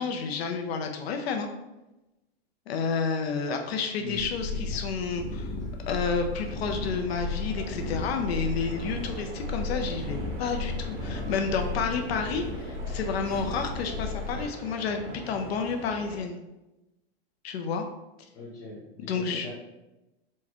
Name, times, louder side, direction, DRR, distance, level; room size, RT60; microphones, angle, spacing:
voice 1, 0.0-1.5 2.7-5.5 5.9-16.4 17.4-17.8 19.0-19.5, left 5 dB, 85° left, 4 dB, 0.6 m, -30 dB
sound 1, 4.2-14.5, left 3 dB, 70° left, 0.9 m, -34 dB
voice 2, 4.5-4.8 5.7-5.8 18.3-19.6, left 2 dB, 10° left, -7 dB, 0.9 m, -41 dB
sound 2, 5.3-16.2, right 2 dB, 35° right, 0.6 m, -43 dB
4.5 x 2.2 x 2.9 m, 0.99 s
supercardioid pair, 175°, 30 cm